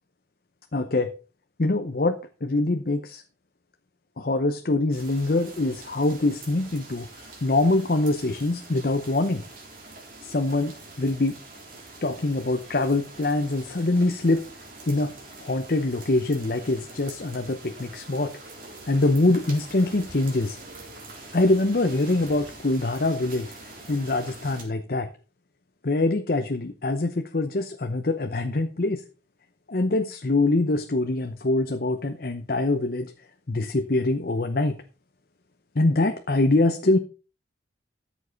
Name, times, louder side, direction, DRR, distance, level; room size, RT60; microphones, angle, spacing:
voice 1, 0.7-1.1 1.6-3.2 4.2-7.1 7.4-9.4 10.2-11.4 12.0-14.4 14.9-15.1 15.4-18.3 18.9-20.6 21.3-23.5 23.9-25.1 25.8-29.0 29.7-33.1 33.5-34.8 35.7-37.0, left 2 dB, 55° left, 7 dB, 0.8 m, -24 dB
sound 1, 4.9-24.6, right 2 dB, 50° right, 3.6 m, -44 dB
13.0 x 7.4 x 4.0 m, 0.34 s
head